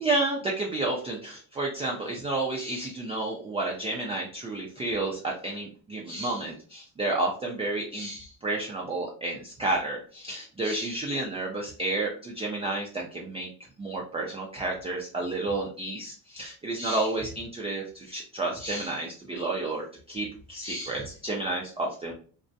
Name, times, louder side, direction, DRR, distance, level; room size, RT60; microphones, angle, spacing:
voice 1, 0.0-13.5 13.8-22.1, right 2 dB, 15° right, -1 dB, 0.3 m, -31 dB
2.6 x 2.0 x 2.5 m, 0.42 s
supercardioid pair, 75°, 49 cm